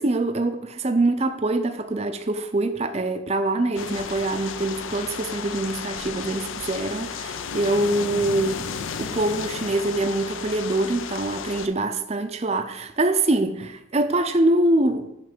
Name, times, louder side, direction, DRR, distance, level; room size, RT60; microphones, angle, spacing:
voice 1, 0.0-8.7 9.0-15.1, right 2 dB, 30° right, 0.5 m, -24 dB
sound 1, 3.7-11.7, left 6 dB, 70° left, 0.5 m, -33 dB
9.2 x 3.2 x 6.6 m
head